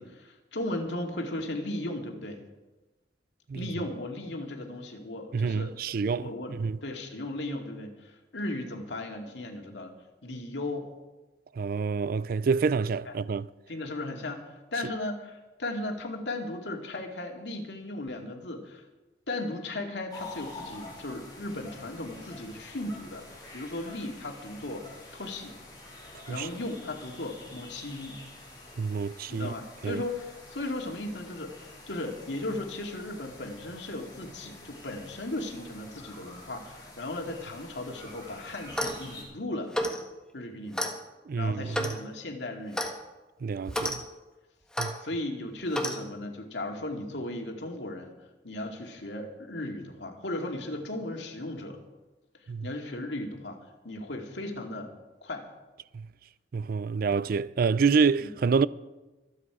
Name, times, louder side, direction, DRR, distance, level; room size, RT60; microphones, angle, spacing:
voice 1, 0.0-2.4 3.5-5.8 6.1-6.6 6.8-9.9 10.2-10.9 13.1-13.2 13.7-18.8 19.3-23.3 23.5-25.5 26.3-28.2 29.3-39.7 40.3-40.9 41.4-42.9 45.0-48.2 48.4-51.8 52.6-53.6 53.8-54.9 55.2-55.5 58.2-58.3, left 1 dB, 90° left, 2.2 m, -36 dB
voice 2, 5.3-6.8 11.6-13.5 26.1-26.5 28.8-29.5 29.8-30.0 41.3-42.0 43.4-44.0 44.8-45.0 52.5-52.7 55.9-56.1 56.5-58.7, right 5 dB, 55° right, 0.4 m, -27 dB
sound 1, 20.1-39.2, left 2 dB, 25° left, 6.1 m, -48 dB
Clock, 38.6-39.0 39.7-40.0 40.7-40.9 41.7-42.0 42.7-42.9 43.7-44.0 44.7-44.9 45.7-46.0, equal, 5° left, 1.5 m, -30 dB
25.0 x 8.6 x 4.8 m
head